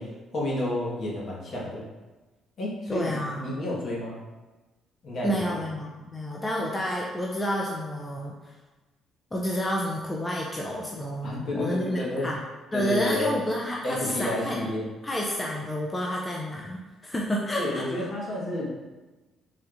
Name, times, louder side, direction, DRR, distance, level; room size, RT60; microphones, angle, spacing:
voice 1, 0.0-1.8 2.6-4.2 5.0-5.6 11.2-12.3 12.7-13.3 13.8-14.8 17.6-18.7, left 1 dB, 55° left, -5 dB, 1.4 m, -31 dB
voice 2, 2.9-3.5 5.2-8.5 9.3-12.4 12.7-14.6 15.0-18.1, equal, 20° left, -2 dB, 0.6 m, -30 dB
4.0 x 3.4 x 2.5 m, 1.2 s
hypercardioid pair, 55°, 0 cm